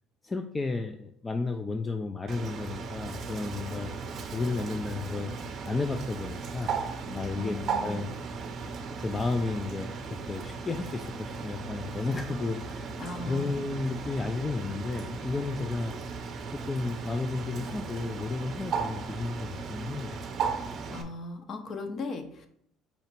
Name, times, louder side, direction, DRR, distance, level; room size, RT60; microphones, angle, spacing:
voice 1, 0.2-5.3 5.6-6.7 7.1-8.1 9.0-12.9 13.3-16.0 16.5-20.2, left 3 dB, 20° left, 5 dB, 0.3 m, -33 dB
Bird, 2.3-21.0, right 5 dB, 50° right, 0.5 m, -36 dB
voice 2, 7.1-8.0 13.0-13.5 20.9-22.5, left 3 dB, 45° left, 7 dB, 0.7 m, -38 dB
4.2 x 2.8 x 4.4 m, 0.69 s
cardioid pair, 105°, 0 cm